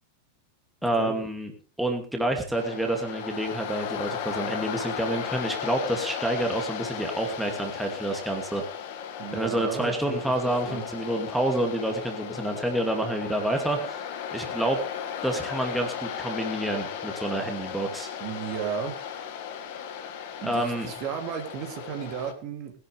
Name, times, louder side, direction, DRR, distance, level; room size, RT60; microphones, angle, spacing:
voice 1, 0.8-1.5 1.8-8.6 9.3-14.8 15.2-18.1 20.4-20.9, right 1 dB, 5° right, 2 dB, 2.6 m, -28 dB
Waves surf, 2.5-22.3, left 8 dB, 50° left, 2.1 m, -36 dB
voice 2, 9.2-10.8 18.2-18.9 20.4-22.7, right 8 dB, 40° right, 4 dB, 3.1 m, -34 dB
20.5 x 12.0 x 3.5 m, 0.36 s
figure-of-eight pair, 90°, 0 cm